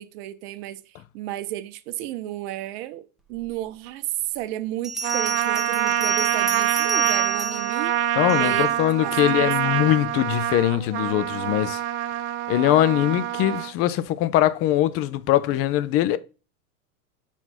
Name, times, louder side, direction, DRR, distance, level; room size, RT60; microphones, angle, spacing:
voice 1, 0.0-8.0 8.3-8.8 9.0-9.8, right 14 dB, 45° right, 0.9 m, -33 dB
Bell, 3.6-3.7 4.8-8.7, right 3 dB, ahead, 1.4 m, -31 dB
Trumpet, 5.0-13.7, right 12 dB, 30° right, 0.6 m, -25 dB
voice 2, 8.2-11.8 12.5-16.2, left 13 dB, 30° left, 0.6 m, -22 dB
5.9 x 4.1 x 5.8 m
hypercardioid pair, 100°, 45 cm